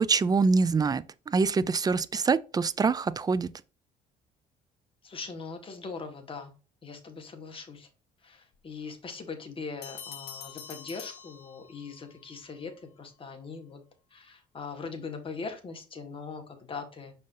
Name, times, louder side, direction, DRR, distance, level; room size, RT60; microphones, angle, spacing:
voice 1, 0.0-3.5, right 4 dB, 20° right, 0.4 m, -25 dB
voice 2, 5.0-6.5 6.8-7.9 8.2-13.8 14.1-17.1, left 4 dB, 30° left, 1.7 m, -41 dB
Bell, 9.8-12.1, left 8 dB, 70° left, 1.2 m, -45 dB
6.4 x 5.5 x 2.7 m
cardioid pair, 110°, 17 cm